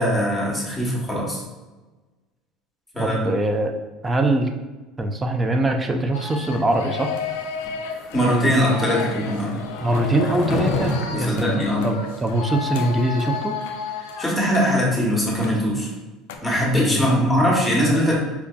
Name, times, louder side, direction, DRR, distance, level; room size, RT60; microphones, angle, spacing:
voice 1, 0.0-1.4 2.9-3.3 8.1-9.5 11.1-11.9 14.2-15.9 16.4-18.2, equal, ahead, -5 dB, 1.1 m, -21 dB
voice 2, 3.0-3.7 4.0-4.5 5.0-7.1 9.8-13.6 16.8-17.3, right 1 dB, 20° right, 5 dB, 0.4 m, -23 dB
sound 1, 6.1-15.5 15.8-15.9 16.3-16.4, left 6 dB, 85° left, 0.3 m, -32 dB
Skateboard, 7.3-12.7, left 2 dB, 45° left, 0.6 m, -31 dB
4.6 x 2.5 x 2.2 m, 1.2 s
supercardioid pair, 105°, 0 cm